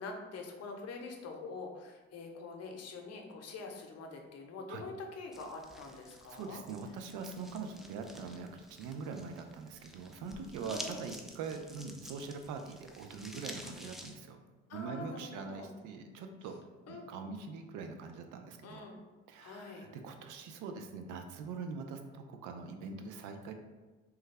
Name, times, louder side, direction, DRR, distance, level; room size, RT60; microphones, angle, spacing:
voice 1, 0.0-6.6 10.6-11.0 14.7-15.7 16.9-17.1 18.6-19.0 19.4-19.9, left 3 dB, 55° left, 3 dB, 0.7 m, -45 dB
sound 1, 5.3-14.1, equal, ahead, 0.4 m, -50 dB
voice 2, 6.3-14.4 14.7-16.6 16.9-18.8 19.3-23.5, right 5 dB, 75° right, 6 dB, 0.5 m, -43 dB
3.2 x 2.2 x 3.3 m, 1.2 s
supercardioid pair, 60°, 31 cm